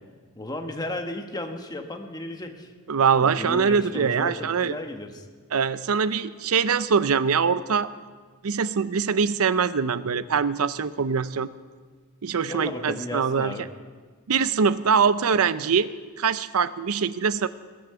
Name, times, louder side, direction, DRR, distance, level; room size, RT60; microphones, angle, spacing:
voice 1, 0.3-2.7 3.2-5.2 12.4-13.7, left 1 dB, 20° left, 4 dB, 1.3 m, -34 dB
voice 2, 2.9-4.8 5.5-7.9 8.4-11.5 12.2-13.5 14.3-15.9 16.2-17.5, right 6 dB, 80° right, 15 dB, 0.6 m, -23 dB
21.0 x 8.6 x 6.9 m, 1.6 s
head